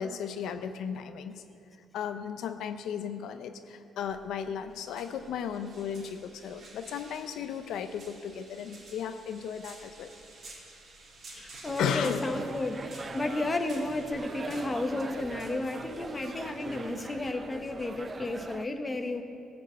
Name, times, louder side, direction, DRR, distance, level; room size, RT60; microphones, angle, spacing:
voice 1, 0.0-1.4 1.9-10.1 11.8-12.3, left 7 dB, 75° left, 8 dB, 0.5 m, -35 dB
sound 1, 4.0-18.7, right 2 dB, 50° right, 2.8 m, -52 dB
voice 2, 11.3-12.9 13.1-19.2, left 2 dB, 20° left, 6 dB, 0.9 m, -32 dB
sound 2, 11.6-18.7, right 4 dB, 30° right, 0.4 m, -42 dB
16.0 x 5.3 x 7.8 m, 2.5 s
cardioid pair, 125°, 0 cm